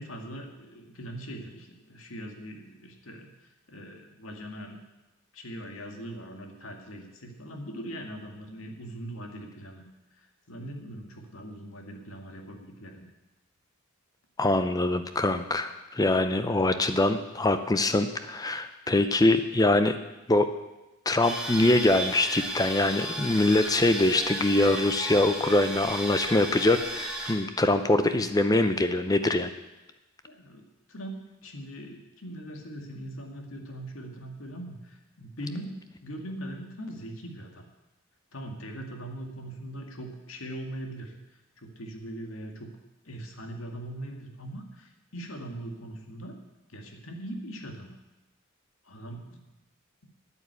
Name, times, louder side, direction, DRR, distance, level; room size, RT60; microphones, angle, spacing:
voice 1, 0.0-4.8 5.3-9.9 10.1-13.0 30.3-30.6 30.9-35.8 36.0-37.6 38.3-41.2 41.6-42.7 43.0-46.4 46.7-48.0 48.8-49.4, right 1 dB, 70° left, 3 dB, 2.0 m, -41 dB
voice 2, 14.4-20.0 20.3-20.5 21.1-29.5, left 2 dB, 15° left, 9 dB, 0.5 m, -23 dB
sound 1, 21.2-27.3, equal, 5° right, 2.0 m, -34 dB
9.9 x 9.2 x 8.2 m, 1.0 s
head